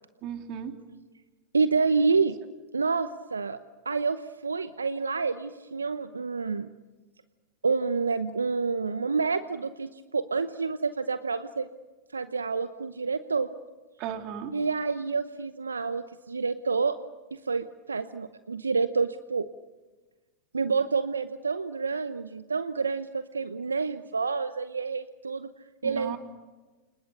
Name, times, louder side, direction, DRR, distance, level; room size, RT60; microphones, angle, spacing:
voice 1, 0.2-0.7 14.0-14.5 25.8-26.2, right 8 dB, 45° right, 5 dB, 3.3 m, -35 dB
voice 2, 1.5-2.4 2.7-3.6 3.8-6.7 7.6-11.7 12.1-13.5 14.5-17.0 17.3-19.5 20.5-25.5 25.8-26.2, right 4 dB, 85° right, 12 dB, 0.8 m, -28 dB
29.5 x 27.0 x 6.7 m, 1.3 s
figure-of-eight pair, 95°, 0 cm